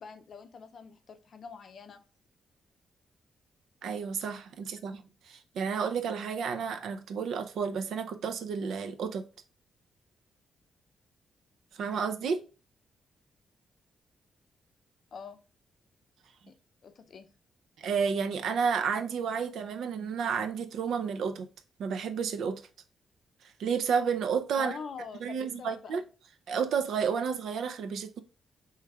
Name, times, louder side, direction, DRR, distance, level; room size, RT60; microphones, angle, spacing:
voice 1, 0.0-2.0 15.1-15.4 16.5-16.6 16.8-17.3 24.6-26.0, left 5 dB, 50° left, 0.5 m, -44 dB
voice 2, 3.8-5.0 5.3-9.2 11.8-12.4 17.8-21.5 21.8-22.6 23.6-24.8 25.2-26.0 26.5-28.2, right 6 dB, 75° right, 0.5 m, -31 dB
4.7 x 3.1 x 3.3 m
wide cardioid pair, 155°, 0 cm